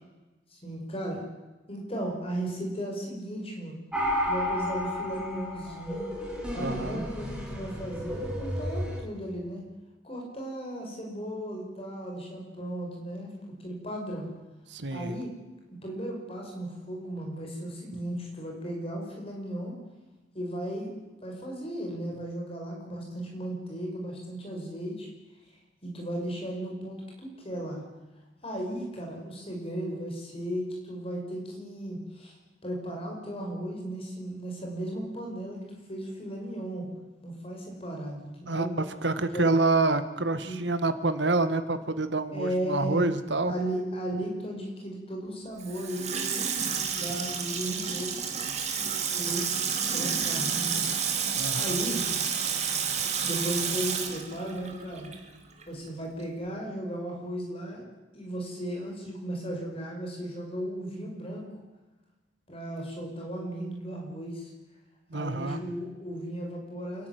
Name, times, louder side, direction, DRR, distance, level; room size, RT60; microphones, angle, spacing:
voice 1, 0.5-1.2 1.7-3.8 4.3-6.1 6.5-9.7 10.0-13.3 13.6-14.3 14.9-15.4 15.7-19.7 20.3-20.9 21.2-25.1 25.8-27.8 28.4-32.3 32.6-36.9 37.2-38.7 39.3-39.4 40.4-40.6 42.3-43.0 43.4-46.4 47.0-48.4 49.1-49.5 49.9-50.9 51.5-52.1 53.2-55.1 55.7-57.8 58.1-61.5 62.5-64.5 65.1-67.1, right 1 dB, 30° left, 0 dB, 6.1 m, -35 dB
sound 1, 3.9-9.0, left 1 dB, 5° right, 4.2 m, -32 dB
voice 2, 6.5-7.1 14.7-15.1 38.5-38.7 39.0-43.5 51.3-51.8 65.1-65.6, right 2 dB, 80° right, 11 dB, 1.7 m, -27 dB
Water tap faucet / Sink (filling or washing), 45.6-55.3 55.6-55.7, right 7 dB, 40° right, 2.6 m, -30 dB
27.5 x 12.5 x 9.6 m, 1.1 s
head